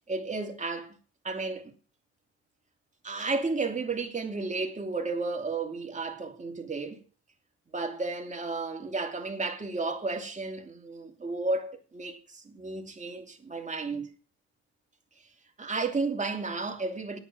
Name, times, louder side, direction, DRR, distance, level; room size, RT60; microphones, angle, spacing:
voice 1, 0.1-1.0 1.2-1.7 3.0-7.0 7.7-14.1 15.6-17.2, right 3 dB, 25° right, 2.8 m, -33 dB
9.6 x 8.2 x 7.5 m
cardioid pair, 90°, 30 cm